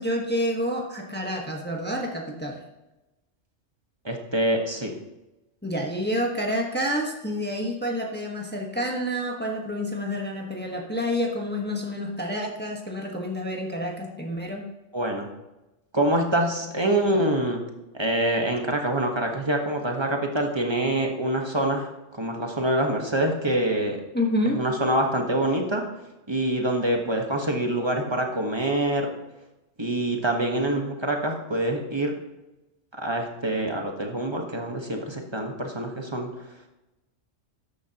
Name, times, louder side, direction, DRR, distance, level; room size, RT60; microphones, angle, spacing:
voice 1, 0.0-2.6 5.6-14.7 24.1-24.6, equal, 10° left, 0 dB, 1.3 m, -28 dB
voice 2, 4.0-4.9 14.9-15.3 15.9-17.6 17.9-24.0 24.5-25.8 26.3-29.1 29.8-32.1 33.0-36.3, right 1 dB, 25° right, 2 dB, 1.3 m, -25 dB
13.0 x 9.8 x 3.0 m, 1.0 s
omnidirectional pair, 1.2 m